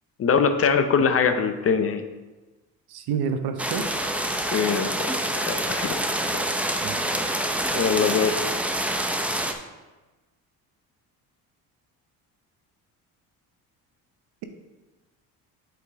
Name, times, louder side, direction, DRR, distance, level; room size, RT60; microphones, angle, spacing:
voice 1, 0.2-2.0 4.3-6.0 7.7-8.4, left 6 dB, 40° left, 8 dB, 0.7 m, -23 dB
voice 2, 2.9-3.9 6.8-7.1, right 6 dB, 80° right, 7 dB, 0.8 m, -28 dB
sound 1, 3.6-9.5, right 1 dB, 5° right, 0.5 m, -26 dB
8.1 x 5.0 x 3.7 m, 1.2 s
cardioid pair, 100°, 37 cm